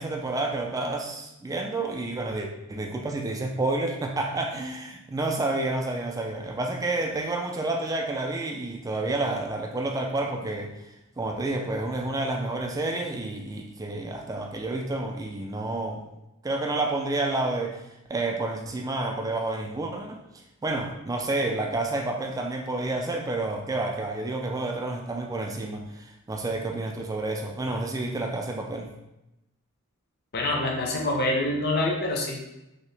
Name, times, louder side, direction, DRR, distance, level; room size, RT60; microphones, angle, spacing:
voice 1, 0.0-10.7 11.2-16.0 16.4-17.8 18.1-20.2 20.6-28.9, right 2 dB, 15° right, 2 dB, 0.3 m, -29 dB
voice 2, 30.3-32.5, left 2 dB, 45° left, 0 dB, 0.5 m, -26 dB
2.9 x 2.8 x 3.2 m, 0.91 s
head